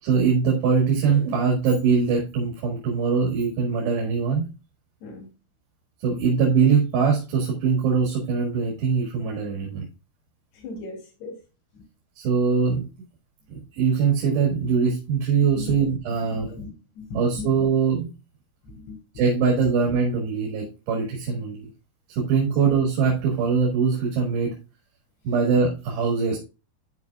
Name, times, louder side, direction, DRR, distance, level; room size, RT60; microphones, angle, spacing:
voice 1, 0.0-4.5 6.0-9.9 12.2-12.9 13.5-16.5 17.1-18.1 19.2-21.6 22.1-24.6 25.3-26.4, right 5 dB, 75° right, 4.0 m, -22 dB
voice 2, 10.5-11.4 11.7-11.8 15.5-15.8 16.4-17.5 18.6-19.0, left 4 dB, 70° left, 5.0 m, -38 dB
12.5 x 5.0 x 2.4 m
omnidirectional pair, 5.0 m